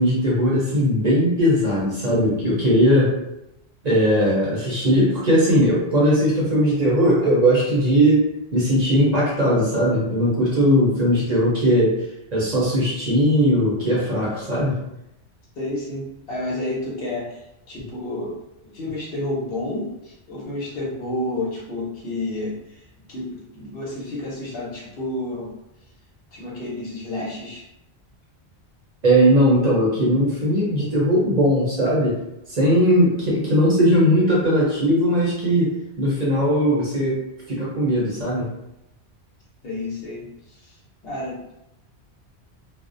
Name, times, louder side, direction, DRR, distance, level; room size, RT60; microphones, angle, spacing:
voice 1, 0.0-3.1 3.8-8.2 8.5-12.0 12.3-14.8 29.0-32.2 32.5-38.5, equal, 45° right, -6 dB, 0.6 m, -19 dB
voice 2, 15.6-17.4 17.7-18.4 18.7-25.5 26.3-27.6 39.6-40.8 41.0-41.4, left 1 dB, 65° left, -5 dB, 0.9 m, -30 dB
2.4 x 2.0 x 2.5 m, 0.87 s
omnidirectional pair, 1.1 m